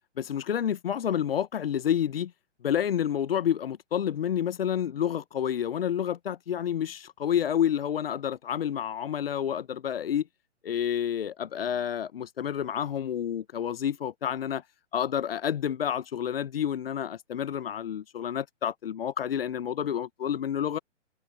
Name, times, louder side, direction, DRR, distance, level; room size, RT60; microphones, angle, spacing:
voice 1, 0.2-2.3 2.6-10.3 10.6-14.6 14.9-20.8, left 9 dB, 50° left, 1.1 m, -29 dB
figure-of-eight pair, 125°, 37 cm